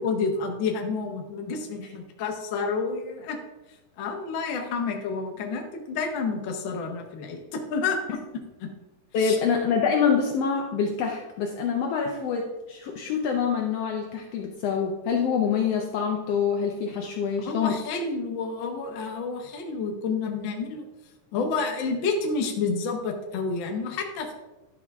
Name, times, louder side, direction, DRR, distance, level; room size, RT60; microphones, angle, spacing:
voice 1, 0.0-3.4 4.0-8.2 8.6-8.7 9.2-9.4 17.4-20.8 21.3-24.3, left 4 dB, 70° left, 2 dB, 1.1 m, -29 dB
voice 2, 9.1-17.7, left 6 dB, 90° left, 2 dB, 1.3 m, -26 dB
11.0 x 6.0 x 3.5 m, 1.0 s
omnidirectional pair, 3.8 m